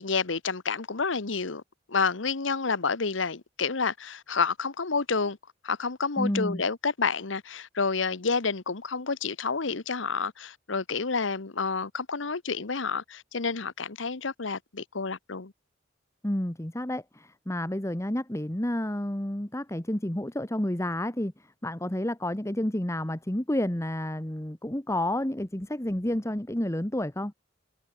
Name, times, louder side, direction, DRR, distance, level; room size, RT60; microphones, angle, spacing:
voice 1, 0.0-1.6 1.9-5.4 5.6-15.5, left 4 dB, 85° left, 1.2 m, -29 dB
voice 2, 6.2-6.6 16.2-27.3, left 1 dB, 15° left, 1.4 m, -30 dB
head